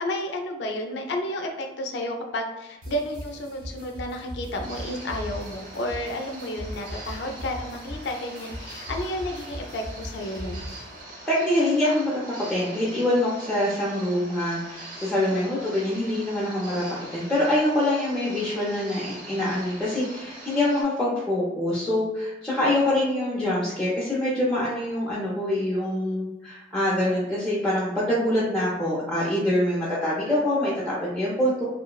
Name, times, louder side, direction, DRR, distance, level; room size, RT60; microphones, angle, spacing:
voice 1, 0.0-10.6 15.3-15.8, left 1 dB, 65° left, 3 dB, 0.4 m, -32 dB
sound 1, 2.8-11.0, equal, 85° right, 1.1 m, -39 dB
sound 2, 4.6-20.8, right 1 dB, 45° right, 0.8 m, -43 dB
voice 2, 11.3-12.2 12.5-31.6, left 1 dB, 5° left, -8 dB, 0.4 m, -25 dB
3.0 x 2.0 x 2.3 m, 1.1 s
head